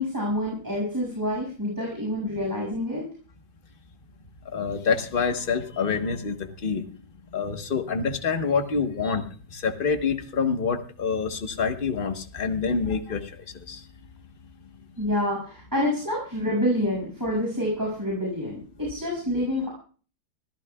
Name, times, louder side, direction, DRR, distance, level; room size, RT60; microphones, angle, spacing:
voice 1, 0.0-3.1 15.0-19.7, left 1 dB, 10° right, -4 dB, 6.7 m, -27 dB
voice 2, 4.5-6.8 7.3-9.2 9.5-13.3 13.7-13.8, left 5 dB, 30° left, 6 dB, 1.3 m, -26 dB
25.5 x 15.0 x 2.4 m, 0.40 s
omnidirectional pair, 2.1 m